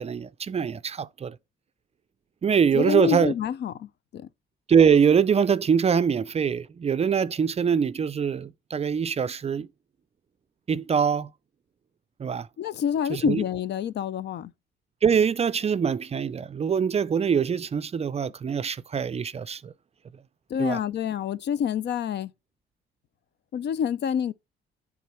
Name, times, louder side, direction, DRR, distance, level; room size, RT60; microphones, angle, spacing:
voice 1, 0.0-1.4 2.4-3.3 4.7-9.7 10.7-11.3 12.2-12.5 13.1-13.4 15.0-19.7 20.6-20.8, right 7 dB, 30° right, 0.4 m, -23 dB
voice 2, 2.7-4.3 12.6-14.5 20.5-22.3 23.5-24.3, left 8 dB, 60° left, 0.5 m, -27 dB
9.2 x 3.8 x 4.3 m
cardioid pair, 90°, 20 cm